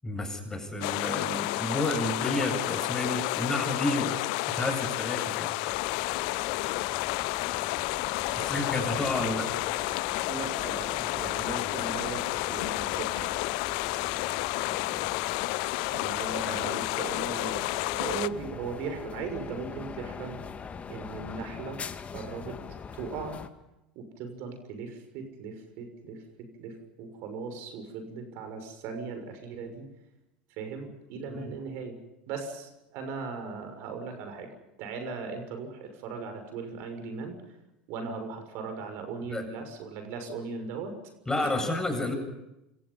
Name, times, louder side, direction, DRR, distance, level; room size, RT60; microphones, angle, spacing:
voice 1, 0.0-4.2 4.5-5.5 8.3-9.5 16.3-16.6 31.3-31.5 39.3-39.4 41.3-42.2, left 1 dB, 10° left, 5 dB, 7.9 m, -31 dB
sound 1, 0.8-18.3, left 22 dB, 60° left, 0.8 m, -31 dB
voice 2, 1.3-1.8 8.3-8.5 10.3-10.9 11.1-12.2 12.5-13.3 15.9-20.4 20.9-21.8 22.1-22.6 22.9-23.4 23.9-29.9 30.6-32.0 32.3-34.5 34.8-37.6 37.9-40.9 41.4-41.6, right 5 dB, 55° right, 6 dB, 6.5 m, -38 dB
sound 2, 5.6-23.5, left 6 dB, 30° left, 2.1 m, -42 dB
27.5 x 27.0 x 5.7 m, 0.91 s
hypercardioid pair, 80°, 5 cm